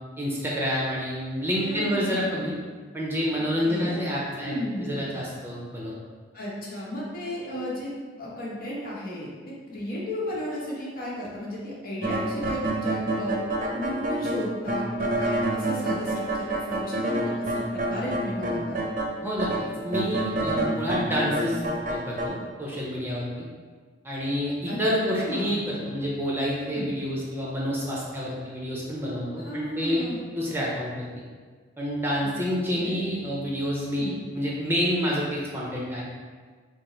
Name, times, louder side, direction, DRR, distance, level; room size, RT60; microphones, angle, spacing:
voice 1, 0.2-2.5 2.9-4.5 4.8-6.0 19.2-19.5 19.8-21.6 21.9-23.3 24.0-30.1 30.3-31.1 31.8-36.0, equal, 15° right, -5 dB, 0.7 m, -28 dB
voice 2, 1.7-2.3 3.6-4.0 4.4-4.9 6.3-7.9 8.2-9.3 9.7-13.3 13.7-18.8 20.3-20.6 24.7-24.8 25.0-25.6 26.7-26.9 29.4-30.2 32.2-32.3 32.7-33.0 34.0-34.2, equal, 55° left, -6 dB, 1.2 m, -34 dB
sound 1, 12.0-19.1 19.4-22.3, right 1 dB, 45° right, 0.7 m, -27 dB
5.2 x 2.1 x 4.3 m, 1.5 s
head